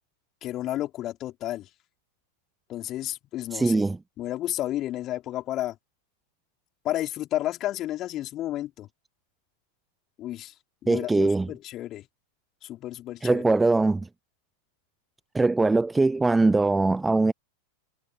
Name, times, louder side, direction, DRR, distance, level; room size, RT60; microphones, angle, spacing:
voice 1, 0.4-1.7 2.7-3.8 4.2-5.8 6.8-8.9 10.2-10.5 10.8-12.0 12.6-13.4, left 14 dB, 35° left, 3.9 m, -31 dB
voice 2, 3.5-4.0 10.9-11.5 13.2-14.1 15.3-17.3, right 3 dB, 10° right, 0.6 m, -22 dB
figure-of-eight pair, 90°, 0 cm